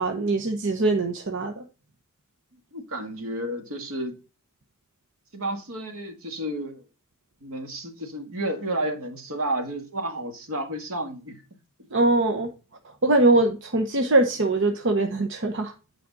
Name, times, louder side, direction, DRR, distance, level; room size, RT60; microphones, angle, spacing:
voice 1, 0.0-1.6 11.9-12.5 13.0-15.7, right 2 dB, 60° right, 1.0 m, -22 dB
voice 2, 2.7-4.2 5.3-6.8 7.4-11.4, right 1 dB, 85° right, 1.8 m, -31 dB
8.8 x 5.1 x 4.0 m
head